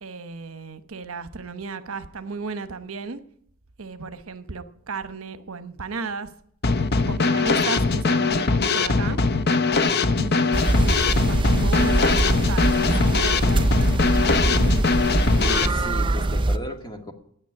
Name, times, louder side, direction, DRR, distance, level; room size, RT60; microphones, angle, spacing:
voice 1, 0.0-3.2 3.8-6.3 7.1-9.2 10.2-10.8 11.2-14.8 15.7-16.2, right 4 dB, 75° right, 0.9 m, -34 dB
Drum kit / Snare drum, 6.6-15.7, left 4 dB, 50° left, 0.8 m, -21 dB
sound 1, 10.5-16.6, right 2 dB, 25° right, 0.6 m, -23 dB
voice 2, 15.4-17.1, equal, 20° left, 2.0 m, -34 dB
10.5 x 9.2 x 9.8 m
head